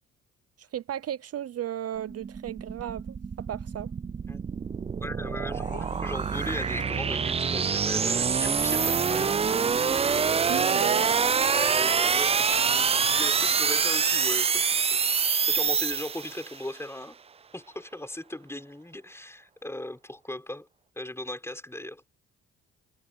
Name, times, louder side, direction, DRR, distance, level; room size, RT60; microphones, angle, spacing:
voice 1, 0.6-3.9 10.5-11.1, right 11 dB, 55° right, 0.7 m, -34 dB
sound 1, 2.0-16.6, right 6 dB, 20° right, 0.4 m, -26 dB
voice 2, 5.0-9.6 11.5-15.0 15.4-17.2 17.5-20.7 21.0-22.1, left 1 dB, 10° left, 5.6 m, -38 dB
sound 2, 5.5-11.6 12.0-12.2, left 11 dB, 75° left, 2.6 m, -50 dB
cardioid pair, 90°, 30 cm